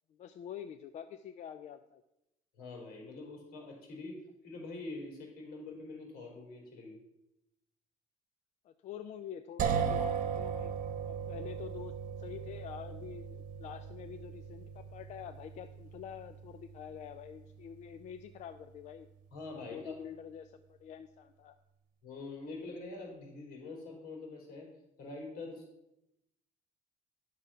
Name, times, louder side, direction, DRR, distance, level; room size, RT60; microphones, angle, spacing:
voice 1, 0.1-2.0 8.6-10.7 11.1-19.1 19.5-21.5, left 9 dB, 55° left, 9 dB, 0.5 m, -47 dB
voice 2, 2.6-4.1 4.4-7.0 19.3-19.9 22.0-24.7 25.0-25.6, left 3 dB, 80° left, -1 dB, 4.0 m, -45 dB
sound 1, 9.6-19.4, right 7 dB, 65° right, 1.3 m, -38 dB
11.0 x 6.1 x 5.7 m, 0.88 s
cardioid pair, 155°, 15 cm